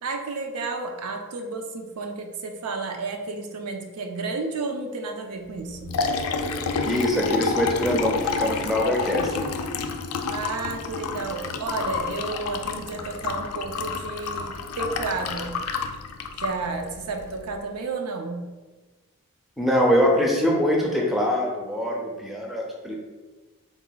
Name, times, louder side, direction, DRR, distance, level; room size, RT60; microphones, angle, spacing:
voice 1, 0.0-6.0 10.3-15.6 16.4-18.4, right 3 dB, 85° right, 4 dB, 0.5 m, -32 dB
Liquid, 5.6-17.5, left 4 dB, 75° left, 0.3 m, -29 dB
voice 2, 6.8-9.5 19.6-22.9, equal, ahead, -2 dB, 0.4 m, -23 dB
3.6 x 2.2 x 3.9 m, 1.3 s
head